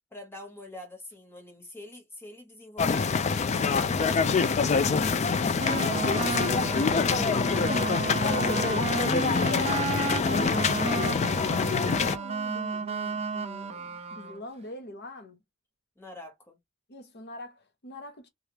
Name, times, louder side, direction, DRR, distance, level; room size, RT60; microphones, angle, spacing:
voice 1, 0.1-6.5 16.0-16.6, left 2 dB, 10° left, 1.2 m, -46 dB
sound 1, 2.8-12.2, left 5 dB, 30° left, 0.3 m, -25 dB
sound 2, 5.6-14.4, right 4 dB, 30° right, 0.4 m, -33 dB
voice 2, 7.4-9.0 10.6-15.4 16.9-18.3, left 2 dB, 50° left, 0.9 m, -44 dB
3.3 x 2.4 x 2.9 m
head